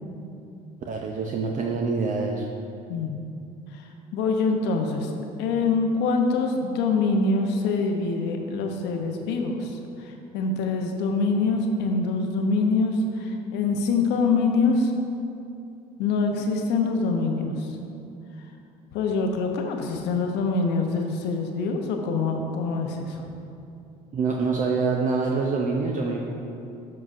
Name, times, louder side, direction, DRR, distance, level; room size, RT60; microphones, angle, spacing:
voice 1, 0.9-2.5 24.1-26.2, right 4 dB, 45° right, 0 dB, 0.6 m, -25 dB
voice 2, 4.1-5.1 5.4-14.9 16.0-17.7 18.9-23.2, left 3 dB, 70° left, 3 dB, 0.7 m, -25 dB
7.5 x 5.7 x 2.5 m, 2.7 s
supercardioid pair, 75°, 19 cm